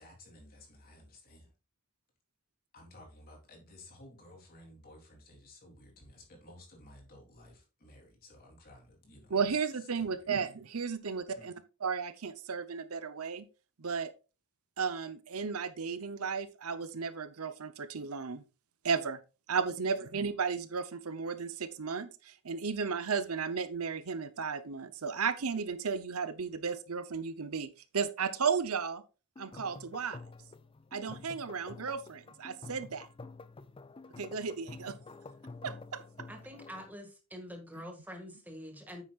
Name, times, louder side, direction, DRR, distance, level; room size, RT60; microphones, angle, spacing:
voice 1, 0.0-1.5 2.7-9.6 10.0-10.3 11.0-11.5, left 1 dB, 40° left, 3.3 m, -55 dB
voice 2, 9.3-11.5 11.8-13.4 13.8-14.1 14.8-18.4 18.8-19.2 19.5-27.7 27.9-29.0 29.4-30.2 30.9-33.1 34.2-35.0 35.6-36.0, right 5 dB, 75° right, 0.8 m, -34 dB
sound 1, 29.4-36.9, left 3 dB, 25° left, 0.5 m, -49 dB
voice 3, 36.3-39.0, equal, 10° right, 2.0 m, -46 dB
9.3 x 8.3 x 2.5 m
head